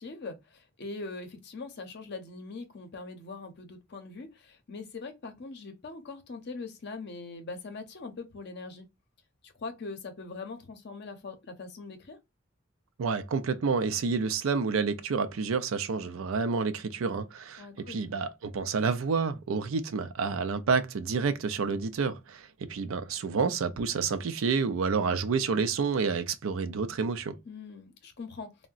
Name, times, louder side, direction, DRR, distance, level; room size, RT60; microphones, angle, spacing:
voice 1, 0.0-8.9 9.4-12.2 17.6-18.0 27.5-28.7, left 3 dB, 55° left, 0.6 m, -42 dB
voice 2, 13.0-27.3, right 5 dB, 80° right, 0.4 m, -29 dB
3.6 x 2.1 x 2.4 m
head